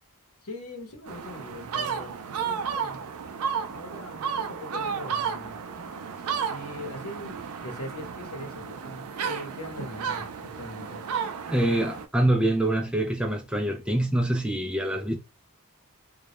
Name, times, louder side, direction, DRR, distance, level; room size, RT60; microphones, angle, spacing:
voice 1, 0.4-3.1 3.7-5.6 6.5-11.0, left 1 dB, 80° left, 0.8 m, -41 dB
sound 1, 1.1-12.1, right 6 dB, 75° right, 0.4 m, -33 dB
voice 2, 11.5-15.1, right 1 dB, 5° right, 0.3 m, -25 dB
2.2 x 2.0 x 2.9 m
head